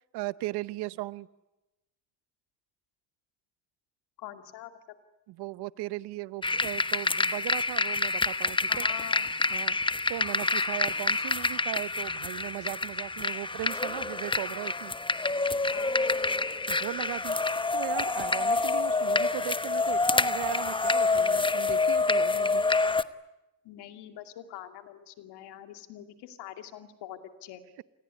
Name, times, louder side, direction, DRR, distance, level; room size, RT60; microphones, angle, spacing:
voice 1, 0.1-1.3 5.3-8.9 9.5-9.8 10.1-14.9 16.7-17.4 17.7-22.6, right 18 dB, 80° right, 18 dB, 0.9 m, -37 dB
voice 2, 4.2-4.7 8.7-9.3 15.7-16.1 23.6-27.6, left 12 dB, 80° left, 8 dB, 2.5 m, -44 dB
sound 1, 6.4-23.0, left 3 dB, 15° left, 1.0 m, -27 dB
28.0 x 20.5 x 9.7 m, 0.97 s
supercardioid pair, 80°, 39 cm